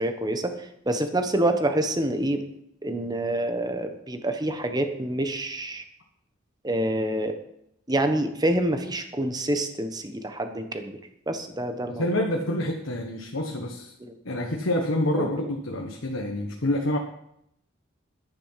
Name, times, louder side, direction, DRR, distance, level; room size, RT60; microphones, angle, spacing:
voice 1, 0.0-2.4 2.8-5.9 6.6-7.3 7.9-11.0 11.3-12.2 14.0-14.2 15.2-15.3, right 1 dB, 20° right, 7 dB, 1.2 m, -27 dB
voice 2, 11.9-13.9 14.2-17.0, left 1 dB, 75° left, 1 dB, 1.4 m, -27 dB
10.5 x 10.5 x 5.8 m, 0.77 s
head